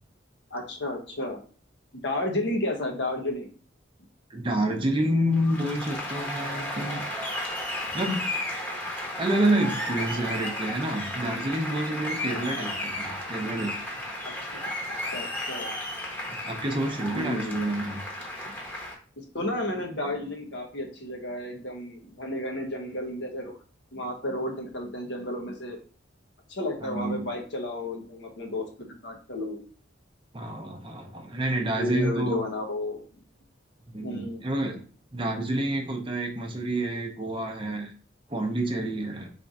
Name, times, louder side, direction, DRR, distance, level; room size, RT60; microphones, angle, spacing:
voice 1, 0.5-1.4 1.9-3.5 12.2-12.8 14.2-14.7 15.1-15.7 17.1-17.7 19.2-23.6 23.9-25.8 26.5-29.6 31.8-33.0 34.0-34.5, left 1 dB, 60° left, 2 dB, 1.1 m, -32 dB
voice 2, 4.3-7.0 7.9-8.3 9.2-13.8 16.4-18.0 26.8-27.3 30.3-32.4 33.9-34.8 35.1-37.9 38.3-39.3, right 1 dB, 25° right, 3 dB, 0.7 m, -28 dB
Applause, 5.3-18.9, left 1 dB, 10° left, 1.1 m, -34 dB
3.8 x 3.4 x 4.1 m, 0.40 s
head